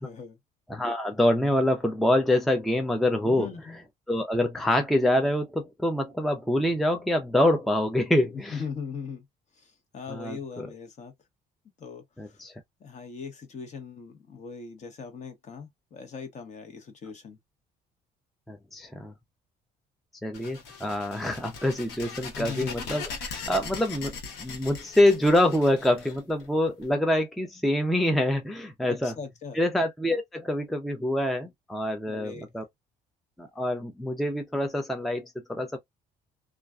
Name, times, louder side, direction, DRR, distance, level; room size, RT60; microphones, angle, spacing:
voice 1, 0.0-0.4 3.2-3.8 8.3-9.2 9.6-11.1 11.8-12.4 12.8-17.4 22.3-23.0 28.9-29.6 32.1-32.5, left 5 dB, 45° left, 1.0 m, -40 dB
voice 2, 0.7-3.5 4.1-8.6 10.1-10.4 12.2-12.5 18.5-19.1 20.2-29.1 29.5-32.6 33.4-35.8, left 1 dB, ahead, 0.4 m, -25 dB
sound 1, 20.3-26.8, left 5 dB, 90° left, 0.9 m, -40 dB
2.4 x 2.2 x 2.3 m
cardioid pair, 110°, 17 cm